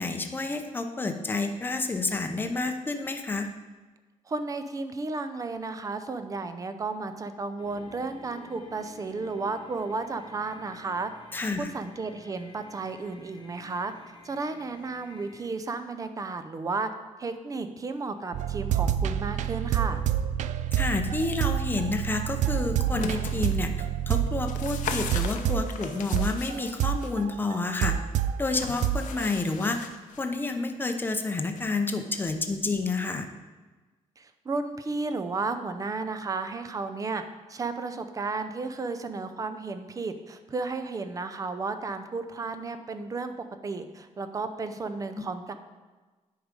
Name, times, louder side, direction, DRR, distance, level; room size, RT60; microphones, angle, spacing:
voice 1, 0.0-3.5 11.3-11.7 20.7-28.0 28.4-29.9 30.2-33.3 45.2-45.3, left 3 dB, 15° left, 5 dB, 0.7 m, -29 dB
voice 2, 4.3-11.1 11.6-13.9 14.2-16.9 17.2-20.0 34.2-37.2 37.5-43.3 43.6-45.5, right 3 dB, 25° right, 9 dB, 0.6 m, -33 dB
sound 1, 7.6-15.5, left 4 dB, 35° left, 1.1 m, -51 dB
sound 2, 18.3-28.4 28.8-29.3, right 10 dB, 70° right, 0.4 m, -28 dB
sound 3, 22.7-23.6 24.1-27.1 28.4-30.2 31.6-31.7, left 7 dB, 85° left, 0.8 m, -38 dB
9.9 x 4.8 x 5.3 m, 1.3 s
cardioid pair, 150°, 13 cm